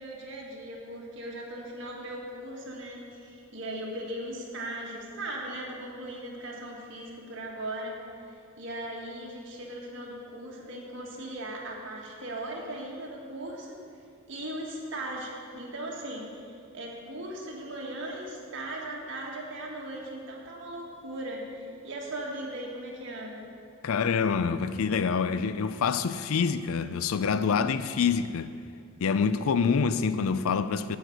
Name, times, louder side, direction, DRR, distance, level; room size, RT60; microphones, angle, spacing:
voice 1, 0.0-8.0 8.6-13.8 14.3-23.4, right 1 dB, 55° right, 1.8 m, -38 dB
voice 2, 23.8-28.5 29.0-31.0, left 6 dB, 75° left, 0.4 m, -26 dB
11.0 x 5.0 x 7.9 m
head